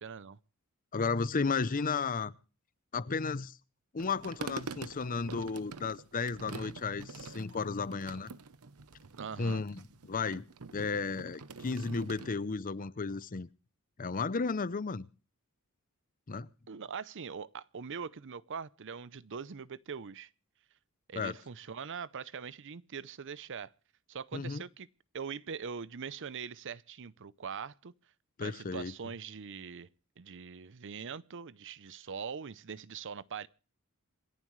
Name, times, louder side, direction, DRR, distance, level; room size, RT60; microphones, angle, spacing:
voice 1, 0.0-0.4 9.2-9.6 16.7-20.3 21.1-23.7 24.1-24.9 25.1-27.9 28.4-29.9 30.2-33.5, right 6 dB, 55° right, 0.6 m, -42 dB
voice 2, 0.9-2.3 2.9-3.6 3.9-8.3 9.4-10.4 10.7-13.5 14.0-15.1 16.3-16.5 21.2-21.4 24.3-24.6 28.4-28.9, left 4 dB, 40° left, 0.6 m, -33 dB
sound 1, 4.0-12.3, right 4 dB, 80° right, 0.9 m, -46 dB
27.0 x 11.0 x 3.2 m
head